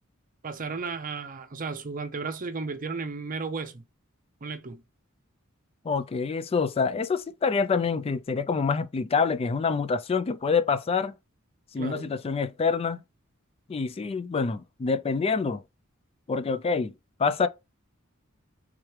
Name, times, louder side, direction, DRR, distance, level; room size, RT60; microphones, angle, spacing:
voice 1, 0.4-3.8 4.4-4.8 11.8-12.1, right 4 dB, 40° right, 0.7 m, -34 dB
voice 2, 5.8-11.1 11.7-13.0 13.7-15.6 16.3-16.9 17.2-17.5, left 5 dB, 30° left, 0.3 m, -26 dB
3.6 x 3.2 x 4.6 m
head